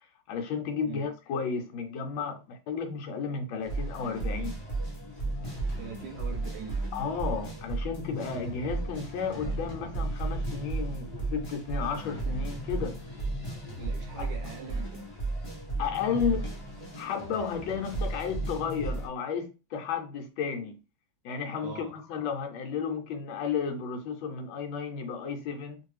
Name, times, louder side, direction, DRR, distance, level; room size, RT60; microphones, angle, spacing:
voice 1, 0.3-4.6 6.9-13.0 14.2-14.3 15.8-16.5 17.0-20.8 21.2-25.8, left 6 dB, 75° left, 1.3 m, -33 dB
voice 2, 0.8-1.2 5.8-6.9 13.8-15.1 21.6-21.9, right 5 dB, 75° right, 1.0 m, -42 dB
drums in pursuit, 3.6-19.1, right 2 dB, 30° left, 0.7 m, -34 dB
3.0 x 2.5 x 3.2 m
omnidirectional pair, 2.2 m